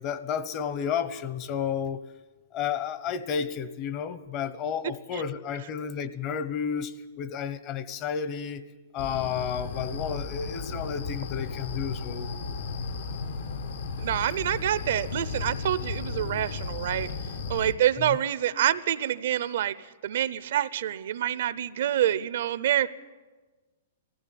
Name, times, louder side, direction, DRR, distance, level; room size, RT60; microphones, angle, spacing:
voice 1, 0.0-2.0 2.5-8.6 8.9-12.3 18.0-18.2, left 7 dB, 35° left, 14 dB, 1.0 m, -32 dB
sound 1, 9.0-17.7, left 4 dB, 75° left, 2.0 m, -34 dB
voice 2, 14.0-17.1 17.5-19.8 20.0-22.9, right 11 dB, 65° right, 16 dB, 0.8 m, -27 dB
19.0 x 15.5 x 9.6 m, 1.3 s
hypercardioid pair, 145°, 0 cm